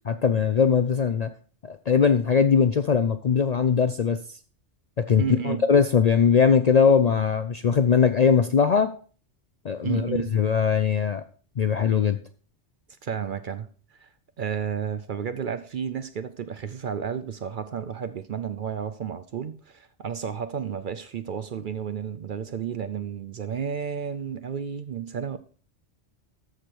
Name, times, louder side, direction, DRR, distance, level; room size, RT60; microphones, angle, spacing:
voice 1, 0.0-1.3 1.6-4.4 5.0-8.9 9.6-11.2 11.6-12.2, left 6 dB, 55° left, 0.4 m, -21 dB
voice 2, 5.2-5.7 9.8-10.3 13.0-13.7 14.0-14.1 14.4-25.4, right 7 dB, 55° right, 0.6 m, -32 dB
13.5 x 5.0 x 4.5 m
omnidirectional pair, 1.2 m